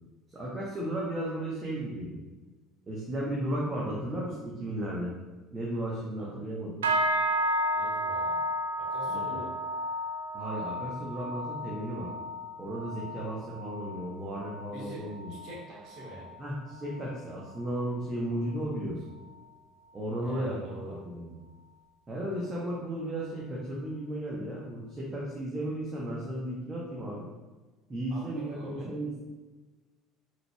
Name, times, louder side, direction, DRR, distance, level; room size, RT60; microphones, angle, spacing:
voice 1, 0.3-2.2 2.9-5.1 5.5-6.8 9.1-9.5 10.3-12.1 12.6-15.4 16.4-19.1 19.9-20.6 20.8-21.4 22.1-27.3 27.9-29.2, right 1 dB, 25° right, -5 dB, 0.9 m, -34 dB
sound 1, 6.8-16.4 16.7-17.1 17.5-17.8 18.4-18.5, equal, 75° right, 0.4 m, -33 dB
voice 2, 7.7-8.4 8.8-9.5 14.7-16.3 20.2-21.0 28.1-28.9, right 1 dB, 45° right, -3 dB, 1.4 m, -45 dB
6.1 x 3.4 x 2.3 m, 1.2 s
figure-of-eight pair, 60°, 0 cm